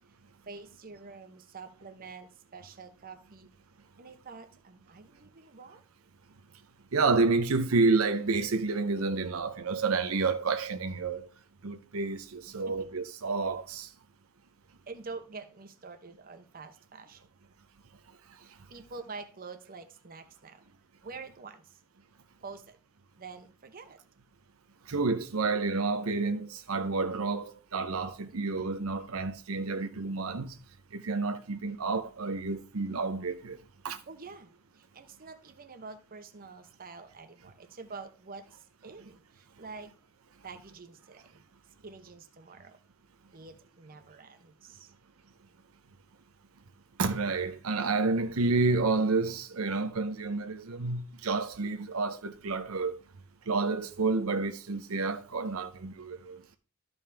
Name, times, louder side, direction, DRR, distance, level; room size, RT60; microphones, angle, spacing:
voice 1, 0.5-3.5 4.0-5.8 12.5-12.7 14.9-17.2 18.4-20.6 21.0-21.8 22.4-22.8 23.2-24.0 34.1-40.0 40.4-41.4 41.8-42.8 43.3-44.9 56.4-56.6, right 4 dB, 45° right, 0.9 m, -47 dB
voice 2, 6.9-11.3 11.6-13.9 24.9-30.5 30.9-33.6 33.8-34.0 47.0-53.0 53.5-56.4, right 3 dB, 85° right, 0.7 m, -29 dB
13.0 x 5.4 x 3.4 m
head